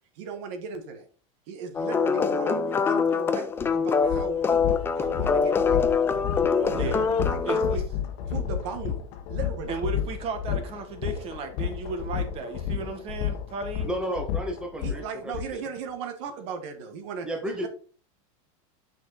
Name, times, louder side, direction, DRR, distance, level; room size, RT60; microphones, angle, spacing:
voice 1, 0.1-1.1 1.5-5.9 6.7-7.8 8.3-9.0 9.3-9.7 14.8-17.7, right 5 dB, 55° right, 7 dB, 1.4 m, -37 dB
sound 1, 1.7-7.8, left 5 dB, 15° left, 0.5 m, -24 dB
sound 2, 3.6-3.7 4.0-15.4, left 9 dB, 50° left, 1.3 m, -31 dB
voice 2, 6.7-7.0 7.4-7.8 9.7-13.9, right 3 dB, 35° right, 7 dB, 1.6 m, -34 dB
voice 3, 13.8-15.6 17.2-17.7, equal, 5° right, 2 dB, 1.4 m, -32 dB
7.4 x 5.8 x 4.1 m, 0.40 s
supercardioid pair, 150°, 18 cm